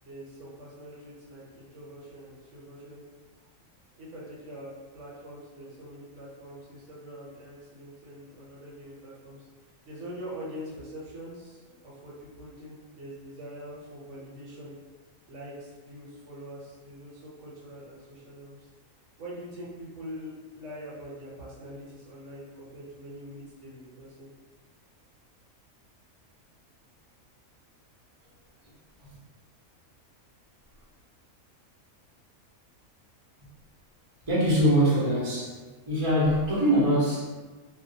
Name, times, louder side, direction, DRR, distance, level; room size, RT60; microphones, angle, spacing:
voice 1, 0.0-3.0 3.4-3.5 4.0-14.8 15.3-18.7 19.2-24.3, equal, 65° right, -7 dB, 1.0 m, -44 dB
voice 2, 34.2-35.6 35.9-37.2, equal, 30° right, -8 dB, 0.6 m, -23 dB
2.3 x 2.1 x 2.7 m, 1.3 s
omnidirectional pair, 1.4 m